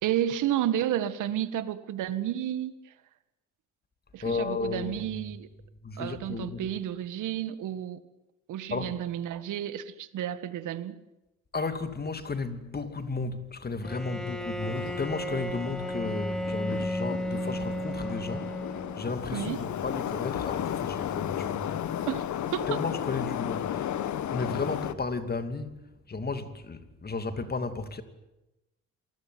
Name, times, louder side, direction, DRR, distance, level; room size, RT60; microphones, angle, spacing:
voice 1, 0.0-2.7 4.1-5.5 6.0-8.0 8.5-11.0 19.3-19.6 22.1-22.8, right 11 dB, 85° right, 1.9 m, -31 dB
voice 2, 4.2-5.2 5.8-6.7 8.7-9.0 11.5-18.5 19.0-21.7 22.7-23.9 24.3-28.0, left 3 dB, 30° left, 2.7 m, -34 dB
Bowed string instrument, 13.8-19.3, left 1 dB, ahead, 2.9 m, -34 dB
Subway metro underground, 14.6-24.9, left 10 dB, 70° left, 1.6 m, -34 dB
28.0 x 20.0 x 9.5 m
cardioid pair, 90°, 30 cm